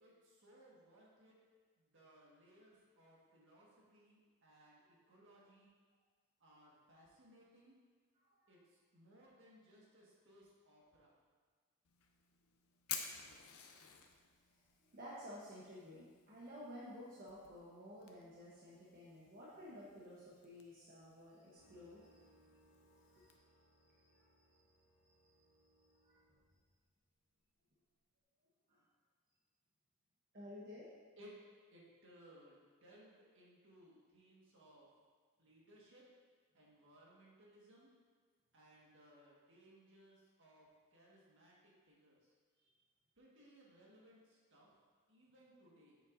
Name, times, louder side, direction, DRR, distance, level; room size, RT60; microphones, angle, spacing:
voice 1, 0.0-1.4 1.8-4.8 5.1-5.7 6.4-7.8 8.5-8.6 8.9-11.1 31.2-31.4 31.7-34.9 35.4-36.1 36.5-37.9 38.5-41.5 41.8-42.2 43.2-44.7 45.1-46.0, right 1 dB, 60° right, -4 dB, 1.6 m, -63 dB
voice 2, 8.1-8.6 13.5-13.8 14.5-22.3 22.9-24.2 25.2-25.3 25.8-26.2 28.7-28.8 30.3-30.9 42.6-42.7, left 1 dB, 45° right, -7 dB, 1.1 m, -54 dB
Fire, 11.8-23.4, left 8 dB, 85° left, 0.7 m, -54 dB
sound 1, 21.6-27.5, equal, 50° left, 1.6 m, -72 dB
7.6 x 6.7 x 2.6 m, 1.5 s
head